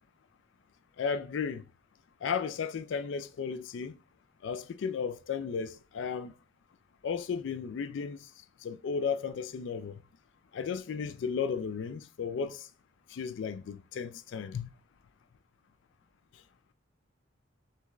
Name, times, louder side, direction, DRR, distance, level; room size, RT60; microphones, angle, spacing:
voice 1, 1.0-1.6 2.2-3.9 4.4-6.3 7.0-8.3 8.6-10.0 10.5-12.7 13.1-14.7, left 6 dB, 60° left, 0.3 m, -34 dB
5.7 x 2.3 x 3.0 m
head